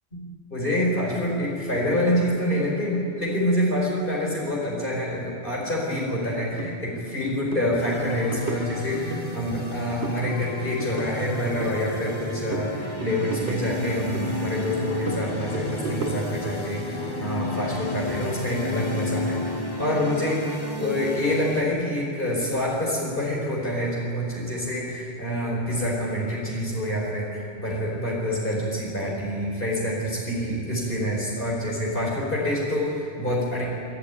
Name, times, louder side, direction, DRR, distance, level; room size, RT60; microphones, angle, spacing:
voice 1, 0.5-33.8, equal, 55° left, -4 dB, 4.6 m, -26 dB
sound 1, 6.6-6.7 7.1-7.2 7.5-7.7 8.0-9.2 9.6-10.2 10.5-12.2 12.5-14.3 14.6-16.5, right 2 dB, 90° right, 2.8 m, -34 dB
sound 2, 7.8-21.6, left 2 dB, 20° left, 1.8 m, -33 dB
26.5 x 12.5 x 9.4 m, 2.5 s
omnidirectional pair, 1.1 m